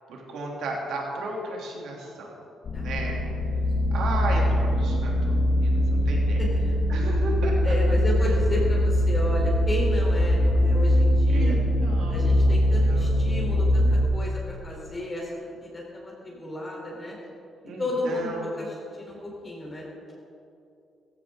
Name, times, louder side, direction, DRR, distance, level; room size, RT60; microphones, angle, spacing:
voice 1, 0.1-2.3 2.7-3.3 3.9-6.4 6.9-7.7 11.3-12.6 12.9-13.1 17.6-18.5, right 2 dB, 75° right, -2 dB, 3.1 m, -34 dB
sound 1, 2.7-14.1, equal, 50° left, 1.4 m, -22 dB
voice 2, 2.7-3.6 6.4-6.6 7.6-11.6 12.1-17.2 17.8-18.3 18.6-20.1, left 1 dB, 25° left, -3 dB, 4.0 m, -33 dB
15.5 x 15.5 x 3.9 m, 2.7 s
cardioid pair, 90°, 0 cm